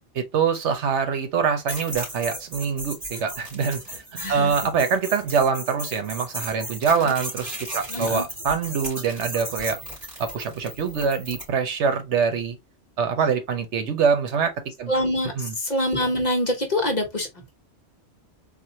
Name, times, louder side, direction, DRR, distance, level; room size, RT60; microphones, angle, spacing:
voice 1, 0.1-4.0 4.3-9.8 10.2-12.6 13.0-14.5 14.8-14.9 15.4-15.5, right 6 dB, 80° right, 1.1 m, -24 dB
sound 1, 1.7-11.5, right 1 dB, 30° right, 2.7 m, -36 dB
voice 2, 4.1-4.6 7.0-7.1 7.9-8.2 14.9-17.3, left 1 dB, 40° left, 1.1 m, -25 dB
4.1 x 2.5 x 2.7 m
omnidirectional pair, 1.2 m